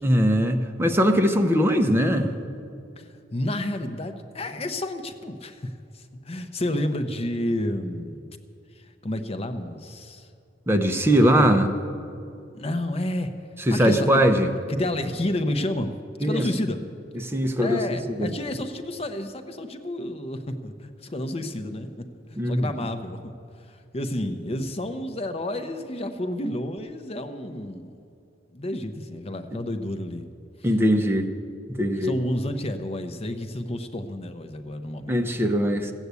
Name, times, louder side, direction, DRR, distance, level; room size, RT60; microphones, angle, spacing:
voice 1, 0.0-2.3 10.7-11.7 13.7-14.5 16.2-16.4 17.2-17.8 18.2-18.3 22.4-22.7 30.6-31.3 31.8-32.1 35.1-35.9, equal, 15° right, 5 dB, 0.7 m, -20 dB
voice 2, 3.0-8.3 8.7-10.3 11.1-11.5 12.5-13.3 13.7-14.2 14.7-15.9 16.2-16.8 17.6-22.1 22.5-27.9 28.5-30.3 31.9-35.5, left 1 dB, 35° left, 8 dB, 0.7 m, -30 dB
15.0 x 8.1 x 8.2 m, 2.6 s
head